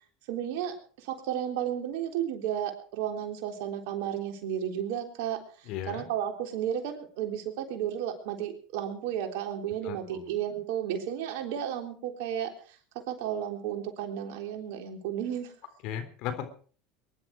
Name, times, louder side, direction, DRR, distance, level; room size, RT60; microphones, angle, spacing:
voice 1, 0.3-5.4 5.9-12.5 13.1-15.5, right 10 dB, 70° right, 4 dB, 3.6 m, -33 dB
voice 2, 5.7-6.1 9.8-10.3 15.8-16.5, left 10 dB, 60° left, 9 dB, 3.6 m, -36 dB
22.5 x 11.5 x 4.8 m, 0.43 s
hypercardioid pair, 85°, 0 cm